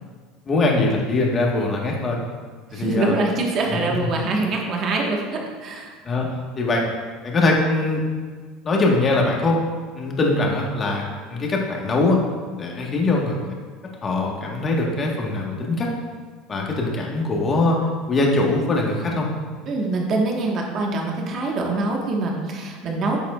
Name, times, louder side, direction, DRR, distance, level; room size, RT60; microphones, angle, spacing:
voice 1, 0.5-2.2 2.7-3.1 3.9-4.0 6.0-6.3 6.6-6.9 7.2-8.0 8.6-9.6 9.9-11.0 11.3-12.2 12.6-13.4 14.0-15.9 16.5-17.8 18.1-19.3, left 2 dB, 25° left, -1 dB, 1.4 m, -22 dB
voice 2, 2.7-5.9 19.7-23.2, right 2 dB, 40° right, 0 dB, 1.4 m, -24 dB
9.8 x 7.1 x 2.4 m, 1.5 s
supercardioid pair, 135°, 0 cm